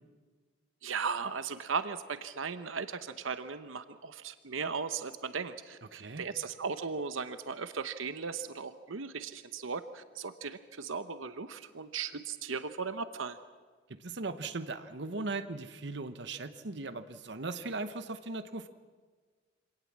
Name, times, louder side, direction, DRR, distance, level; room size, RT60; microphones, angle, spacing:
voice 1, 0.8-13.4, right 5 dB, 90° right, 11 dB, 0.9 m, -37 dB
voice 2, 5.9-6.2 14.0-18.7, right 3 dB, 60° right, 10 dB, 1.0 m, -38 dB
25.0 x 18.0 x 7.4 m, 1.5 s
head